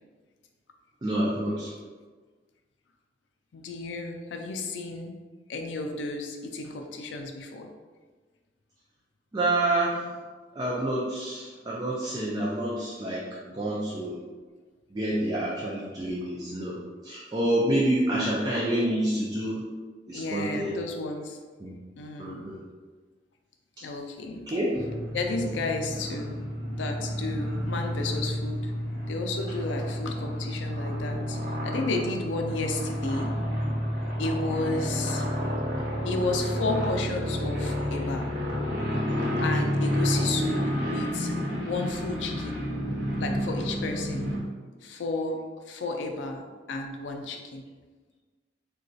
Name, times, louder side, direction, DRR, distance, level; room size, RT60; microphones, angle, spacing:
voice 1, 1.0-1.7 9.3-10.0 10.5-14.2 14.9-19.6 20.1-20.7 21.6-21.7 22.2-22.6 24.5-24.7, right 1 dB, 20° right, -6 dB, 0.4 m, -28 dB
voice 2, 3.5-5.1 5.5-7.7 18.1-18.3 20.1-21.4 22.0-22.4 23.8-24.4 25.1-26.4 26.7-28.7 29.1-33.3 34.2-35.2 36.0-38.3 39.4-41.3 41.6-42.6 43.2-44.3 44.8-45.4 45.7-47.6, left 3 dB, 80° left, 4 dB, 0.4 m, -32 dB
sound 1, 24.7-44.4, equal, 85° right, 0.9 m, -30 dB
3.9 x 2.2 x 2.6 m, 1.4 s
head